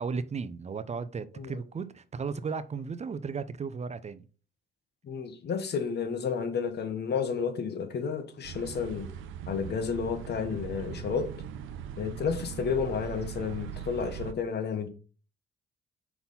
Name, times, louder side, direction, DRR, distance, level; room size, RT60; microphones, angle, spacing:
voice 1, 0.0-4.3, right 5 dB, 35° right, 0.6 m, -35 dB
voice 2, 5.0-9.1 9.5-11.3 12.0-14.9, left 6 dB, 55° left, 1.3 m, -31 dB
sound 1, 8.4-14.3, right 9 dB, 90° right, 0.7 m, -40 dB
5.7 x 4.2 x 5.5 m
cardioid pair, 90°, 20 cm